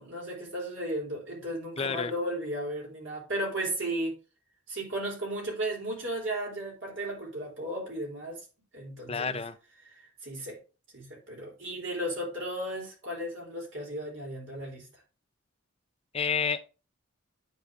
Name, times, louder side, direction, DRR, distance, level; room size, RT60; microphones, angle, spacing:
voice 1, 0.0-4.1 4.7-8.4 8.7-9.4 9.9-10.6 10.9-14.9, right 1 dB, 55° right, 3.5 m, -35 dB
voice 2, 1.8-2.1 9.1-9.6 16.1-16.8, left 5 dB, 25° left, 0.5 m, -30 dB
10.0 x 4.1 x 3.5 m
head